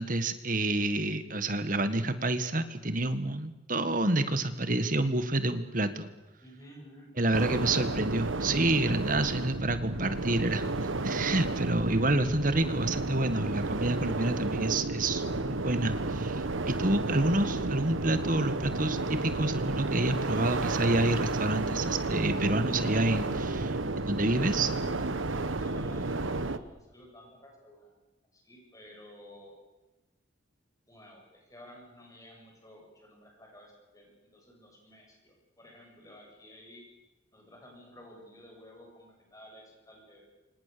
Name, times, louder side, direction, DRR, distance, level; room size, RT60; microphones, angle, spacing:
voice 1, 0.0-6.1 7.2-24.7, right 2 dB, 40° right, 11 dB, 1.7 m, -28 dB
voice 2, 6.4-7.9 11.8-12.1 25.2-28.0 28.3-29.5 30.9-36.9 37.3-40.2, equal, 15° left, 0 dB, 7.6 m, -53 dB
sound 1, 7.3-26.6, right 2 dB, 80° right, 1.2 m, -32 dB
28.5 x 25.5 x 6.9 m, 1.1 s
head